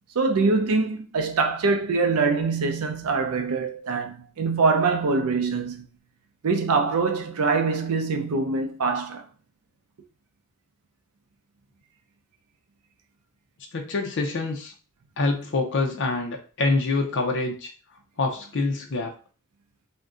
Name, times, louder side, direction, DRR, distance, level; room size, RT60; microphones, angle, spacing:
voice 1, 0.2-5.9 6.4-9.2, right 4 dB, 80° right, 0.5 m, -24 dB
voice 2, 13.7-14.7 15.2-17.7 18.2-19.1, left 3 dB, 55° left, 0.5 m, -26 dB
2.5 x 2.2 x 3.6 m
head